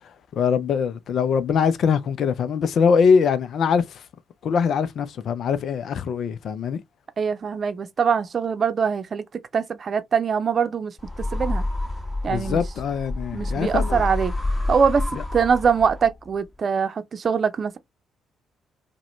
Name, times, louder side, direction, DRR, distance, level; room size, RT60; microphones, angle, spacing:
voice 1, 0.3-4.0 4.4-6.8 12.3-14.1, left 6 dB, 55° left, 0.5 m, -22 dB
voice 2, 7.2-9.2 9.5-11.6 12.2-12.6 13.3-14.3 14.7-17.8, right 6 dB, 45° right, 0.7 m, -23 dB
sound 1, 11.0-16.3, left 2 dB, 20° left, 1.6 m, -28 dB
4.8 x 2.2 x 3.1 m
figure-of-eight pair, 40°, 0 cm